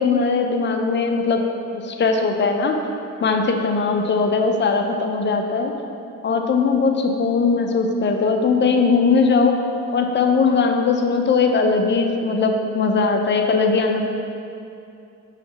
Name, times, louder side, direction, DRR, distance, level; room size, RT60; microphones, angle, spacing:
voice 1, 0.0-1.4 1.7-2.8 3.2-5.8 6.2-9.5 9.9-14.0, left 4 dB, 40° left, 4 dB, 0.6 m, -19 dB
6.5 x 3.2 x 5.6 m, 2.6 s
cardioid pair, 90°, 30 cm